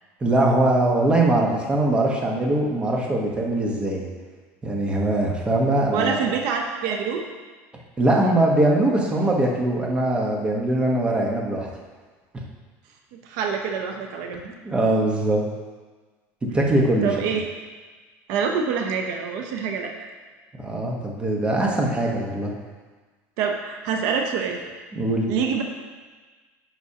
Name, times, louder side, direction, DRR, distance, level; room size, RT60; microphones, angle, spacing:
voice 1, 0.2-4.1 4.6-6.2 8.0-11.7 12.3-12.4 14.6-15.4 16.5-17.1 20.6-22.5 24.9-25.3, right 1 dB, 15° right, -1 dB, 1.1 m, -21 dB
voice 2, 5.9-7.2 13.1-14.5 17.0-17.5 18.3-19.9 23.4-24.6 25.3-25.6, right 6 dB, 70° right, 3 dB, 0.7 m, -26 dB
9.7 x 6.0 x 2.9 m, 1.4 s
cardioid pair, 140°, 6 cm